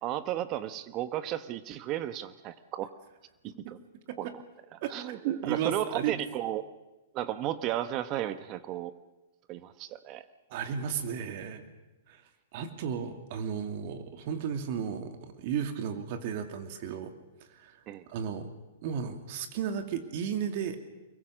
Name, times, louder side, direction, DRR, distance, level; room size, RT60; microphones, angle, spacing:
voice 1, 0.0-2.9 3.6-3.8 4.2-4.3 4.7-6.6 7.1-8.9 9.5-10.2 17.9-18.0, right 12 dB, 35° right, 12 dB, 1.3 m, -34 dB
voice 2, 4.8-6.2 10.5-11.7 12.1-12.2 12.5-17.1 17.5-17.8 18.1-18.5 18.8-20.8, right 8 dB, 50° right, 7 dB, 2.8 m, -34 dB
24.5 x 22.0 x 6.5 m, 1.1 s
hypercardioid pair, 120°, 0 cm